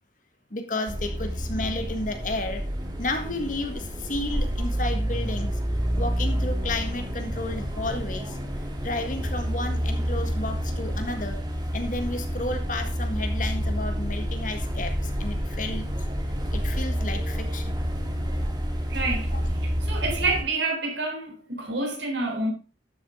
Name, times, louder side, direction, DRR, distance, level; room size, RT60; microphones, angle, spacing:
voice 1, 0.5-2.6 3.0-5.6 6.0-8.4 8.8-11.4 11.7-15.9 16.5-17.8 19.3-19.4, left 2 dB, 45° left, 1.7 m, -32 dB
sound 1, 0.9-20.4, equal, 25° right, 2.1 m, -29 dB
voice 2, 18.9-19.3 19.9-22.5, right 3 dB, 80° right, 3.8 m, -28 dB
12.0 x 7.4 x 3.8 m
head